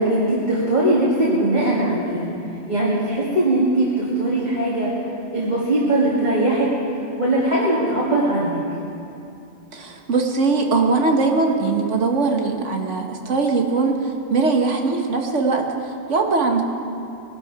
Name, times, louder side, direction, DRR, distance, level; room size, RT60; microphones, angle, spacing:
voice 1, 0.0-2.3 2.7-5.0 5.3-6.7 7.2-8.6, right 1 dB, 40° right, -9 dB, 2.4 m, -20 dB
voice 2, 9.7-16.6, right 3 dB, 80° right, 3 dB, 1.6 m, -21 dB
21.0 x 11.5 x 4.8 m, 2.7 s
omnidirectional pair, 1.2 m